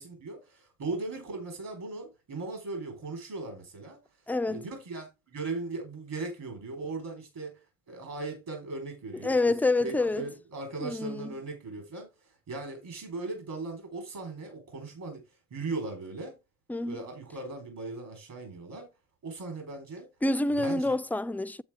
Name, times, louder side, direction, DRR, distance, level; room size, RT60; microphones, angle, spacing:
voice 1, 0.0-4.0 4.5-7.6 7.9-9.6 9.8-15.2 15.5-16.3 16.9-18.9 19.2-20.1 20.5-21.0, right 3 dB, 70° right, 4.2 m, -38 dB
voice 2, 4.3-4.6 9.2-10.2 10.8-11.3 16.7-17.0 20.2-21.6, left 2 dB, 5° left, 0.4 m, -27 dB
8.5 x 8.0 x 3.5 m
supercardioid pair, 65°, 34 cm